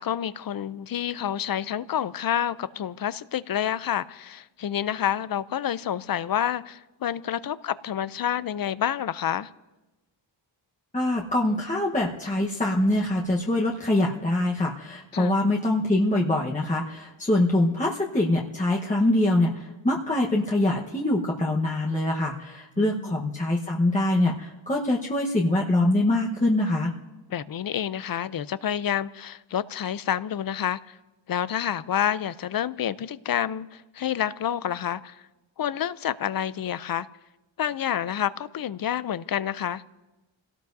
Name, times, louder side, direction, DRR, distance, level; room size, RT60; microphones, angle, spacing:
voice 1, 0.0-9.5 15.1-15.3 22.8-23.1 27.3-31.0 31.3-35.2 35.6-37.1 37.6-39.8, left 10 dB, 50° left, 0.5 m, -28 dB
voice 2, 10.9-26.9, left 1 dB, 15° left, 1.1 m, -24 dB
29.0 x 18.0 x 2.7 m
wide cardioid pair, 140°, 46 cm